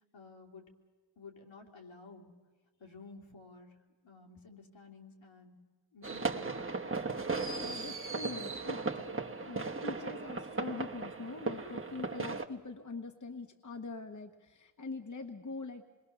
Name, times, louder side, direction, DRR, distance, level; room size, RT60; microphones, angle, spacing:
voice 1, 0.1-0.7 1.2-2.3 2.8-3.8 4.0-5.5 5.9-6.8, left 4 dB, 75° left, 1 dB, 3.3 m, -53 dB
sound 1, 6.0-12.5, right 3 dB, 25° right, 1.1 m, -37 dB
voice 2, 7.6-8.8 9.5-15.8, left 3 dB, 40° left, 6 dB, 1.1 m, -43 dB
27.0 x 21.5 x 6.9 m, 1.5 s
wide cardioid pair, 140°, 47 cm